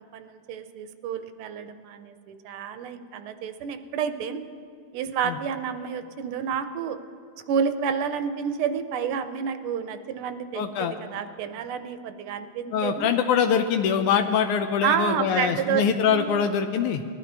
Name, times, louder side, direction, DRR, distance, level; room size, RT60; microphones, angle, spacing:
voice 1, 0.0-4.4 4.9-7.0 7.5-13.1 14.8-16.5, right 7 dB, 80° right, 9 dB, 1.5 m, -30 dB
voice 2, 10.5-10.9 12.7-17.0, left 7 dB, 85° left, 6 dB, 1.5 m, -23 dB
20.0 x 11.5 x 3.4 m, 2.4 s
omnidirectional pair, 2.4 m